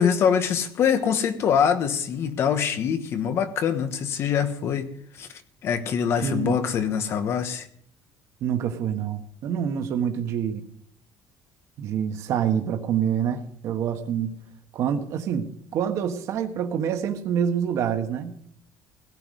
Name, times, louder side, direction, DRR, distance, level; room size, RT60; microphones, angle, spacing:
voice 1, 0.0-4.9 5.2-5.3 5.6-7.7, left 7 dB, 40° left, 10 dB, 1.2 m, -24 dB
voice 2, 6.2-6.6 8.4-10.6 11.8-14.3 14.7-18.3, right 8 dB, 50° right, 5 dB, 1.4 m, -26 dB
17.0 x 6.0 x 9.6 m, 0.66 s
cardioid pair, 175°, 7 cm